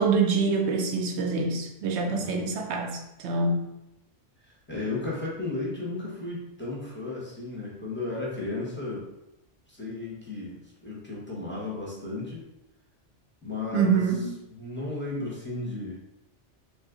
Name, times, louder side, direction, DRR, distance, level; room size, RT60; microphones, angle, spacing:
voice 1, 0.0-3.6 13.7-14.3, right 4 dB, 70° right, 2 dB, 0.8 m, -25 dB
voice 2, 2.0-2.5 4.4-9.1 9.7-12.4 13.4-16.0, left 2 dB, 10° left, -5 dB, 0.7 m, -34 dB
2.9 x 2.4 x 3.6 m, 0.89 s
omnidirectional pair, 1.2 m